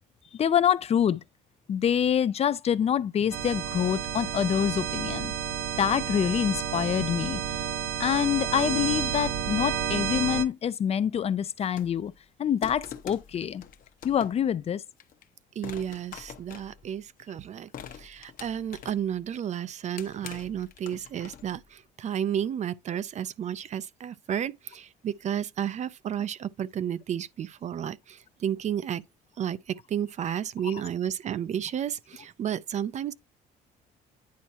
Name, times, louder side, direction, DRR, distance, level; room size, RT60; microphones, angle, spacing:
voice 1, 0.3-1.2 1.7-5.3 5.8-7.4 8.0-12.1 12.4-13.6 14.0-14.8 30.6-30.7, left 9 dB, 40° left, 0.4 m, -26 dB
sound 1, 3.3-10.4, right 8 dB, 65° right, 0.9 m, -31 dB
sound 2, 11.6-12.1 12.6-14.5 15.0-15.2 15.6-17.2 17.7-19.2 19.6-21.6, left 9 dB, 55° left, 0.9 m, -44 dB
voice 2, 15.6-29.0 29.4-33.1, right 9 dB, 45° right, 0.5 m, -32 dB
9.5 x 4.3 x 2.9 m
cardioid pair, 110°, 17 cm